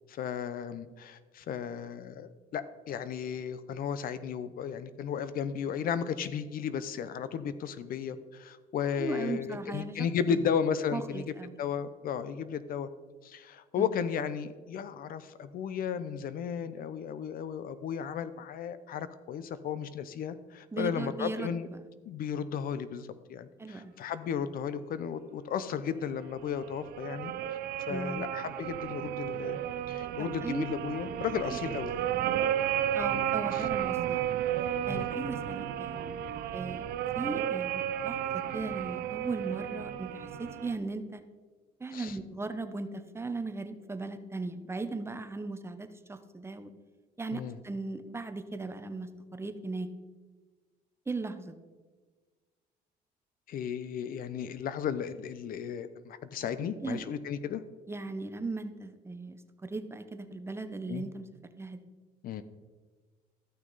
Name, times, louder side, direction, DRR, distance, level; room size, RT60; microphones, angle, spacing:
voice 1, 0.1-11.2 11.6-12.9 13.2-21.7 22.0-27.6 27.9-29.6 29.9-32.0 32.6-32.7 33.5-33.7 34.9-35.1 41.9-42.2 47.3-47.6 53.5-57.6 60.9-61.0 62.2-62.4, left 7 dB, 60° left, 13 dB, 0.6 m, -34 dB
voice 2, 9.0-10.4 10.9-11.6 13.7-13.9 20.7-21.8 23.6-23.9 27.9-28.3 30.4-30.6 31.5-31.6 32.1-32.2 32.9-34.3 34.9-36.1 36.5-36.8 37.1-41.2 41.8-46.7 47.2-49.9 51.1-51.6 56.8-57.0 57.9-61.2 61.6-61.8, right 3 dB, 15° right, 9 dB, 0.7 m, -38 dB
sound 1, 26.4-40.7, right 10 dB, 70° right, 0.5 m, -33 dB
13.5 x 6.2 x 4.0 m, 1.4 s
cardioid pair, 110°, 17 cm